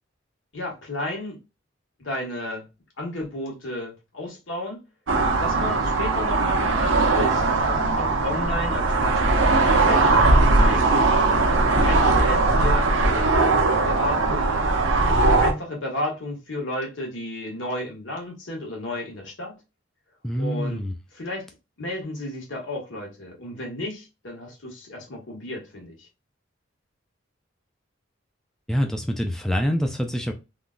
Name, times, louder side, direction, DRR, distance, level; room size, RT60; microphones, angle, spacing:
voice 1, 0.5-1.4 2.0-2.7 3.0-4.8 5.4-13.2 13.8-14.6 15.2-19.6 20.4-20.8 21.1-21.5 21.8-25.9, left 1 dB, 80° left, 1.5 m, -33 dB
sound 1, 5.1-15.5, right 3 dB, 85° right, 0.7 m, -20 dB
voice 2, 20.2-20.9 28.7-30.3, equal, 5° left, 0.4 m, -25 dB
3.6 x 2.3 x 2.4 m
head